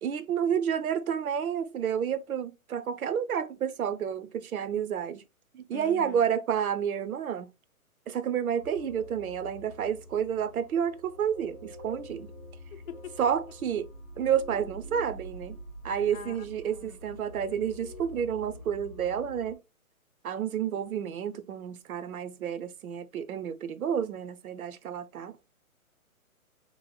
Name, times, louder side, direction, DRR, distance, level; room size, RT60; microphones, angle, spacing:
voice 1, 0.0-5.2 5.5-7.5 8.1-12.3 13.2-13.9 14.2-15.6 15.8-19.6 20.2-25.3, right 8 dB, 75° right, 0.6 m, -30 dB
voice 2, 5.7-6.2 12.7-13.2 16.1-16.4 16.7-17.0, left 9 dB, 70° left, 0.6 m, -44 dB
sound 1, 8.6-19.5, equal, 15° left, 0.7 m, -46 dB
3.0 x 2.0 x 3.9 m
hypercardioid pair, 175°, 43 cm